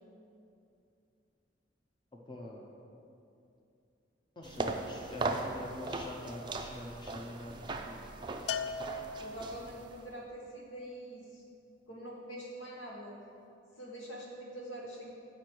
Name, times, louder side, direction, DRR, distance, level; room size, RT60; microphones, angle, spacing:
voice 1, 2.3-2.6 4.4-8.0, left 1 dB, 25° left, -1 dB, 0.6 m, -45 dB
sound 1, 4.4-10.1, right 2 dB, 25° right, 0.4 m, -39 dB
Bell, 8.5-9.8, left 5 dB, 65° left, 0.3 m, -38 dB
voice 2, 9.0-11.4 11.9-13.2 13.8-15.2, right 1 dB, 90° left, -3 dB, 1.5 m, -45 dB
8.1 x 5.2 x 4.5 m, 2.6 s
head